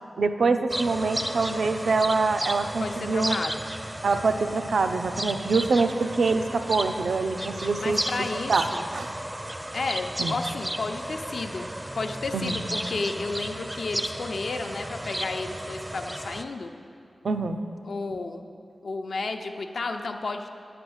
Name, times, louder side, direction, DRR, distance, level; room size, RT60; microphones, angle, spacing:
voice 1, 0.2-3.4 4.0-8.0 8.5-8.7 8.9-9.1 10.2-10.4 12.3-12.6 17.2-17.6, right 4 dB, 85° right, 8 dB, 0.5 m, -25 dB
sound 1, 0.7-16.4, right 1 dB, 15° right, 0.4 m, -34 dB
voice 2, 2.8-3.6 7.8-8.9 9.7-11.7 12.0-16.7 17.8-18.5 18.8-20.5, left 3 dB, 75° left, 5 dB, 0.6 m, -32 dB
9.9 x 6.0 x 7.9 m, 2.5 s
wide cardioid pair, 105°, 0 cm